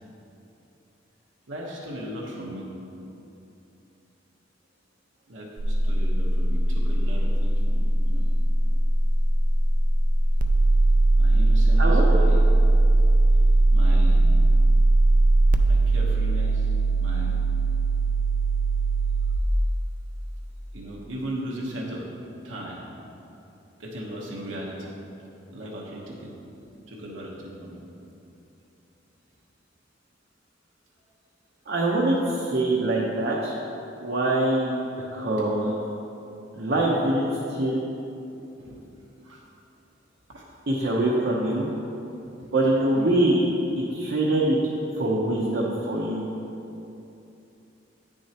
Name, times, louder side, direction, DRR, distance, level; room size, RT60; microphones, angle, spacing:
voice 1, 1.5-2.7 5.3-8.3 8.6-8.7 11.2-12.4 13.3-13.4 13.7-14.5 15.7-16.7 17.0-17.4 20.7-22.0 22.4-22.8 23.8-24.9 25.5-26.3 26.9-27.8 38.6-38.8 39.2-39.4 40.3-40.5 40.9-41.0 42.2-42.5 42.9-43.1, equal, 90° right, -4 dB, 1.1 m, -37 dB
sound 1, 5.6-19.4, right 2 dB, 45° right, 0.4 m, -20 dB
voice 2, 11.8-12.3 31.7-33.5 34.0-34.8 35.1-35.8 36.5-37.8 40.7-41.7 42.5-43.4 43.8-44.6 44.9-46.3, right 1 dB, 65° right, -4 dB, 0.8 m, -24 dB
9.0 x 6.4 x 2.9 m, 2.9 s
head